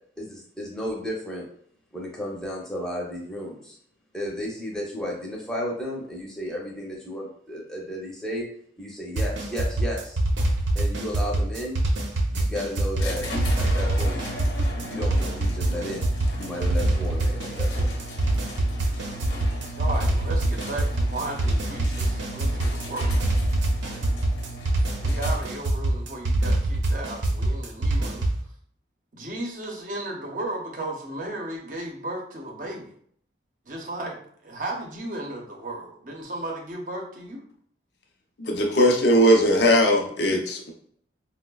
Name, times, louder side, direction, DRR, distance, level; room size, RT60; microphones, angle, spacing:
voice 1, 0.2-1.5 1.9-3.8 4.1-8.5 8.8-10.2 10.7-11.8 12.3-13.3 13.6-14.2 14.8-16.0 16.4-17.9, equal, 5° left, -3 dB, 0.6 m, -33 dB
sound 1, 9.2-28.4, right 1 dB, 90° right, 0.7 m, -24 dB
sound 2, 13.0-25.8, equal, 80° left, 1.0 m, -37 dB
voice 2, 19.8-23.2 24.9-28.2 29.1-32.9 33.7-34.2 34.4-37.4, right 1 dB, 45° right, 0 dB, 0.6 m, -34 dB
voice 3, 38.4-40.7, equal, 65° left, 2 dB, 0.6 m, -19 dB
4.6 x 2.1 x 2.2 m, 0.63 s
head